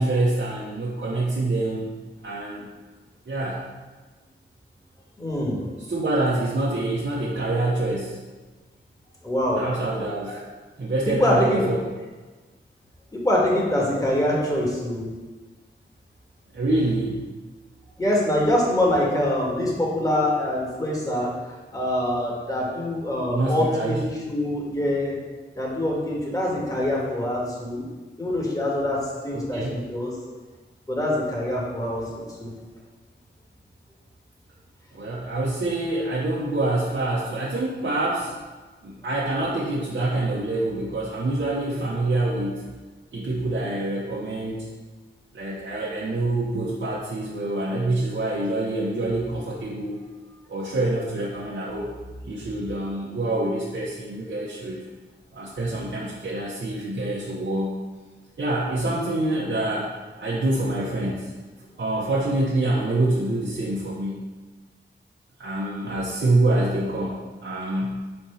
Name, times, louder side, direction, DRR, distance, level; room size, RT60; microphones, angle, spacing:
voice 1, 0.0-1.9 2.2-2.7 3.3-3.6 5.9-8.2 9.6-10.5 10.8-11.8 16.5-17.2 23.3-24.1 29.3-29.8 34.9-38.3 38.8-42.6 43.1-44.7 45.3-50.0 50.5-51.9 52.2-54.8 55.3-57.8 58.4-61.3 61.8-64.2 65.4-68.0, right 2 dB, 65° right, -7 dB, 1.0 m, -26 dB
voice 2, 5.2-5.6 9.2-9.6 11.2-11.6 13.2-15.1 18.0-21.3 21.7-25.1 25.5-27.8 28.2-29.0 29.2-30.1 30.9-32.5, left 1 dB, 15° left, -4 dB, 1.7 m, -24 dB
4.4 x 4.3 x 5.5 m, 1.3 s
wide cardioid pair, 80°, 20 cm